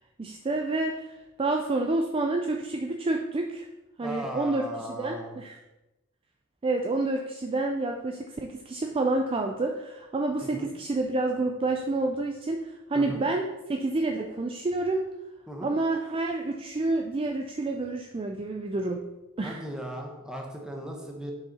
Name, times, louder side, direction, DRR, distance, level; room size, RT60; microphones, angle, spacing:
voice 1, 0.2-3.7 4.0-5.6 6.6-15.1 15.6-19.0 19.4-19.6, right 2 dB, 25° right, 3 dB, 0.4 m, -29 dB
voice 2, 4.0-5.4 10.4-10.7 12.9-13.2 15.5-15.7 19.4-21.3, right 1 dB, 5° right, 1 dB, 0.9 m, -37 dB
6.5 x 4.7 x 4.2 m, 1.0 s
head